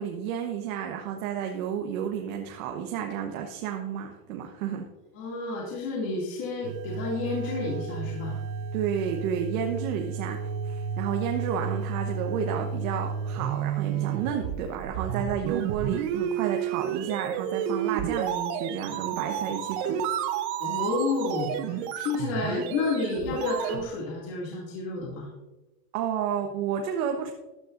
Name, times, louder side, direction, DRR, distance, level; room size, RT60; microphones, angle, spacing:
voice 1, 0.0-4.9 8.7-20.0 25.9-27.3, right 8 dB, 60° right, 3 dB, 1.2 m, -31 dB
voice 2, 5.1-8.4 20.6-25.3, left 3 dB, 40° left, -4 dB, 2.5 m, -30 dB
sound 1, 6.6-23.9, right 8 dB, 45° right, 0.9 m, -31 dB
14.5 x 10.0 x 2.6 m, 1.1 s
supercardioid pair, 160°, 47 cm